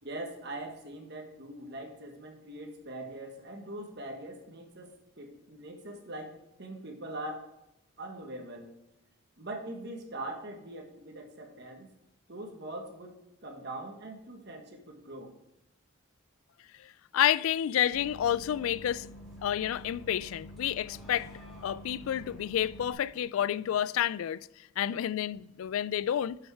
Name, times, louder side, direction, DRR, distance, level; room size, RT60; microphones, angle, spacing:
voice 1, 0.0-7.5 8.0-8.7 9.4-11.9 12.3-15.3, right 1 dB, 50° right, 1.5 m, -42 dB
voice 2, 17.1-19.1 19.4-21.3 21.6-24.4 24.8-26.4, left 10 dB, 80° left, 0.3 m, -29 dB
Bus, 17.9-22.9, equal, ahead, 3.0 m, -48 dB
7.3 x 6.4 x 4.6 m
head